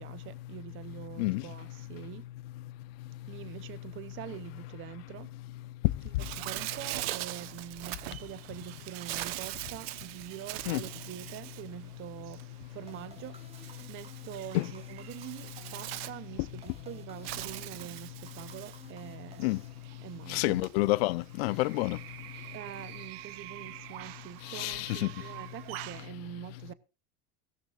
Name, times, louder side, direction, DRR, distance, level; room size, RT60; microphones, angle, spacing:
voice 1, 0.0-2.2 3.3-5.3 6.4-19.5 20.0-20.6 22.5-26.7, right 13 dB, 40° right, 0.8 m, -45 dB
Bird, 6.2-26.1, right 16 dB, 80° right, 1.1 m, -43 dB
sound 1, 12.9-20.3, right 2 dB, 20° right, 2.9 m, -56 dB
voice 2, 20.3-22.0 24.5-25.1, left 20 dB, 80° left, 0.8 m, -28 dB
16.5 x 16.5 x 2.5 m
supercardioid pair, 120°, 30 cm